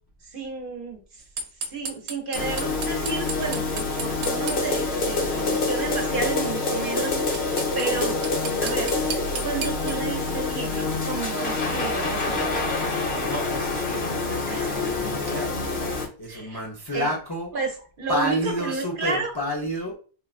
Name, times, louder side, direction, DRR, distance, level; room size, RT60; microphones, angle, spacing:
voice 1, 0.2-1.2 1.7-8.2 8.6-8.9 9.4-12.7 14.5-14.8 16.3-16.6 16.9-17.1 17.5-19.3, right 4 dB, 55° right, 2 dB, 0.9 m, -32 dB
sound 1, 1.4-4.6 7.0-7.1 7.3-9.9, right 3 dB, 90° right, 0.9 m, -32 dB
sound 2, 2.3-16.1, left 3 dB, 70° left, 1.1 m, -26 dB
voice 2, 13.2-15.6 16.2-17.5 18.1-19.9, equal, 35° left, -1 dB, 0.4 m, -30 dB
3.8 x 2.2 x 2.3 m, 0.38 s
omnidirectional pair, 1.1 m